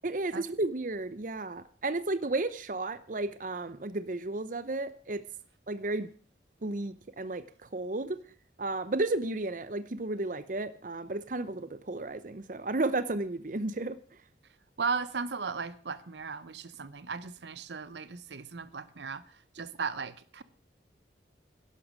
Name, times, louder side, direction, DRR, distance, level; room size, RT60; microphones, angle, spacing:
voice 1, 0.0-5.2 5.7-6.1 6.6-7.4 7.7-8.2 8.6-14.0, right 2 dB, 45° right, 0.7 m, -33 dB
voice 2, 14.8-20.4, right 5 dB, 75° right, 0.8 m, -36 dB
11.5 x 11.5 x 6.2 m
head